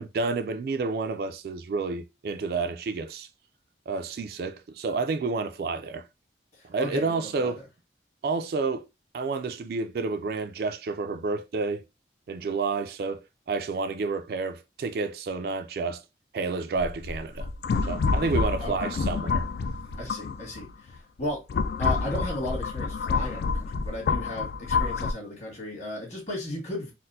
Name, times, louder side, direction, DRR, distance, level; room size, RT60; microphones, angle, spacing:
voice 1, 0.0-3.3 3.9-6.0 6.6-7.6 8.2-8.9 9.1-11.8 12.3-13.2 13.5-16.0 16.3-17.5 17.8-19.5, right 4 dB, 55° right, 0.3 m, -30 dB
voice 2, 6.5-7.6 18.6-18.9 20.0-21.4 21.8-26.9, left 1 dB, 40° left, 1.7 m, -35 dB
sound 1, 16.8-20.7 21.2-25.1, left 4 dB, 60° left, 0.3 m, -28 dB
4.0 x 2.0 x 2.6 m
head